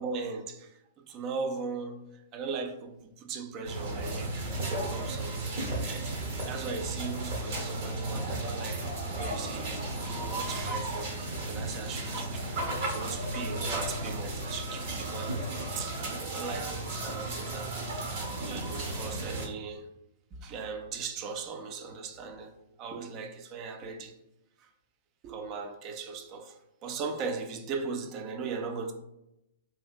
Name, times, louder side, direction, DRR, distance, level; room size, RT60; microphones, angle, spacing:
voice 1, 0.0-2.0 2.3-4.5 4.9-6.1 6.4-11.1 11.5-17.7 18.4-19.9 20.4-22.5 22.8-24.2 25.2-28.9, right 4 dB, 35° right, 0.4 m, -38 dB
sound 1, 3.6-19.5, right 2 dB, 55° right, 0.8 m, -34 dB
2.7 x 2.7 x 2.4 m
hypercardioid pair, 120°, 0 cm